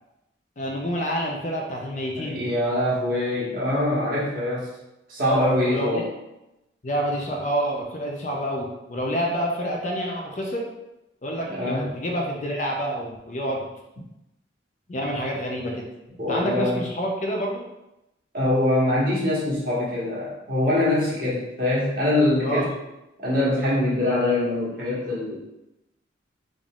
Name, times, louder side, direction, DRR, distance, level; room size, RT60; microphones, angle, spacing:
voice 1, 0.6-2.5 5.2-6.1 6.8-10.7 11.2-13.6 14.9-15.9 16.3-17.6 22.4-22.7, equal, 40° left, -1 dB, 0.5 m, -28 dB
voice 2, 2.2-4.7 5.1-6.1 11.5-11.9 16.2-16.8 18.3-22.7 23.2-25.4, left 1 dB, 50° right, -7 dB, 1.4 m, -23 dB
3.8 x 3.7 x 2.4 m, 0.92 s
head